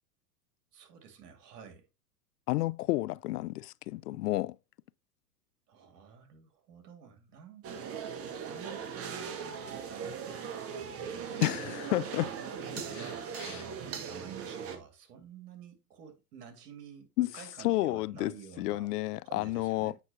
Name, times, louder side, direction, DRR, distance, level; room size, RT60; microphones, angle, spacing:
voice 1, 0.7-1.9 5.7-8.1 8.5-11.6 12.2-18.9 19.2-20.0, right 7 dB, 70° right, 2.3 m, -51 dB
voice 2, 2.5-4.6 11.4-12.3 13.4-13.6 17.2-17.3 17.6-19.9, left 17 dB, 70° left, 0.5 m, -31 dB
sound 1, 7.6-14.8, right 7 dB, 30° right, 1.2 m, -39 dB
8.2 x 5.6 x 2.8 m
hypercardioid pair, 115°, 49 cm